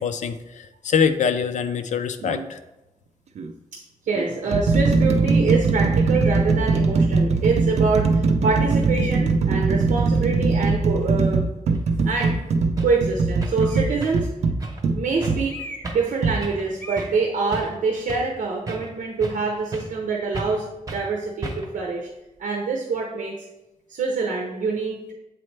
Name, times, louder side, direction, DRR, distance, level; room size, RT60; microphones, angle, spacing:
voice 1, 0.0-2.6, left 6 dB, 70° left, 9 dB, 0.4 m, -24 dB
sound 1, 2.2-2.5 3.4-3.5 4.2-15.5 16.2-16.4, right 4 dB, 55° right, 0.4 m, -21 dB
voice 2, 3.7-11.4 12.0-12.4 12.8-14.3 15.0-22.1 22.4-23.5 23.9-25.1, right 4 dB, 90° right, 0 dB, 0.7 m, -25 dB
sound 2, 6.1-6.5 7.3-7.4 8.9-9.5 13.6-14.2 15.5-16.1 16.3-16.5 16.8-17.2, equal, 10° left, 0.8 m, -38 dB
sound 3, 11.7-11.8 12.2-12.4 12.8-13.0 13.4-13.7 14.0-14.3 14.6-14.8 15.2-15.5 15.8-16.1 16.4-16.7 17.0-17.2 17.5-18.3 18.7-19.4 19.7-20.0 20.3-20.6 20.9-21.1 21.4-21.8, right 2 dB, 25° right, 0.7 m, -34 dB
7.5 x 4.2 x 3.2 m, 0.97 s
wide cardioid pair, 155°, 13 cm